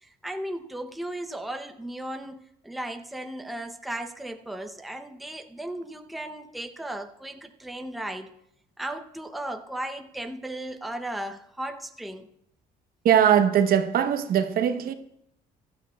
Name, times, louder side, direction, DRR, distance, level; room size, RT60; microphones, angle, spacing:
voice 1, 0.0-8.3 8.8-12.3, right 1 dB, ahead, 0.6 m, -36 dB
voice 2, 13.0-14.9, right 9 dB, 60° right, 0.8 m, -21 dB
15.0 x 12.5 x 2.2 m
cardioid pair, 110°, 17 cm